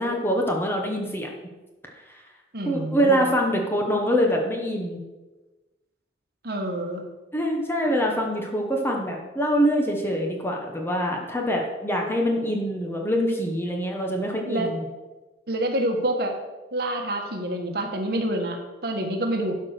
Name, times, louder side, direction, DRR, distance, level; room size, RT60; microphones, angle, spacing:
voice 1, 0.0-1.3 2.6-5.0 7.3-14.8, equal, 15° left, 1 dB, 1.1 m, -24 dB
voice 2, 2.5-3.3 6.4-7.0 14.4-14.7 15.5-16.4 16.7-19.5, right 1 dB, 60° right, 3 dB, 1.5 m, -27 dB
12.0 x 4.8 x 6.5 m, 1.2 s
head